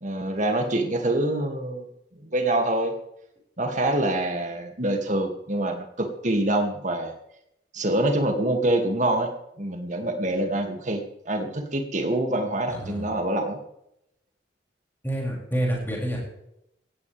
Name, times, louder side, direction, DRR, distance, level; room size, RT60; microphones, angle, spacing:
voice 1, 0.0-1.9 2.2-2.9 3.6-7.1 7.7-9.3 9.6-13.6, right 1 dB, 40° right, 4 dB, 2.5 m, -25 dB
voice 2, 12.7-13.1 15.0-16.2, right 1 dB, 10° left, -3 dB, 6.9 m, -28 dB
17.5 x 16.0 x 3.5 m, 0.80 s
head